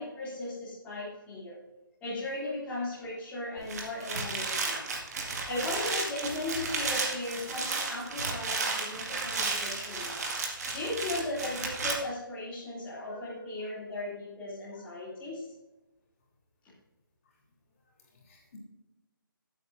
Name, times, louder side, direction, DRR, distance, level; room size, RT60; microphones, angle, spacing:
voice 1, 0.0-1.6 2.0-4.9 5.5-10.2 10.7-15.4, left 2 dB, 10° left, -9 dB, 2.6 m, -37 dB
sound 1, 3.6-11.9, right 3 dB, 45° right, 1.9 m, -33 dB
voice 2, 5.2-5.5 10.5-10.7 13.0-13.3 14.7-14.9 18.3-18.6, left 4 dB, 40° left, -1 dB, 3.3 m, -54 dB
14.5 x 8.5 x 2.6 m, 1.0 s
figure-of-eight pair, 150°, 12 cm